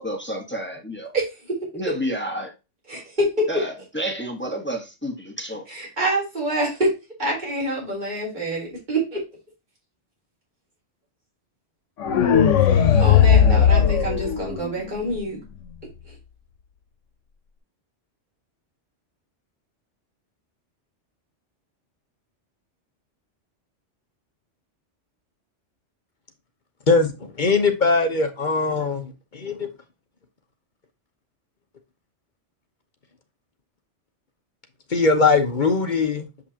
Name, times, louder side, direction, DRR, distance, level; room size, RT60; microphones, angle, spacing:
voice 1, 0.0-1.1 1.7-2.5 3.5-5.6, equal, 10° left, 1.2 m, -30 dB
voice 2, 1.1-1.6 2.9-3.5 5.7-6.9 7.2-9.2 12.7-15.4, right 1 dB, 40° right, 3.5 m, -26 dB
sound 1, 12.0-15.0, left 8 dB, 90° left, 1.2 m, -17 dB
voice 3, 26.9-29.7 34.9-36.3, left 4 dB, 45° left, 1.1 m, -21 dB
7.2 x 5.5 x 2.8 m
omnidirectional pair, 1.2 m